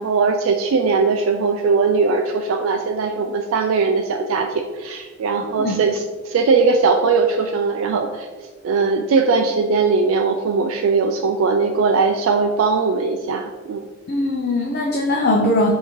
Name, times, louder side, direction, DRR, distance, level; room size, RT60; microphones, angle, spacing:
voice 1, 0.0-8.3 8.6-13.8, right 4 dB, 85° right, 4 dB, 0.3 m, -19 dB
voice 2, 5.4-5.8 14.1-15.7, left 2 dB, 50° left, -1 dB, 0.5 m, -20 dB
5.6 x 2.7 x 3.0 m, 1.3 s
head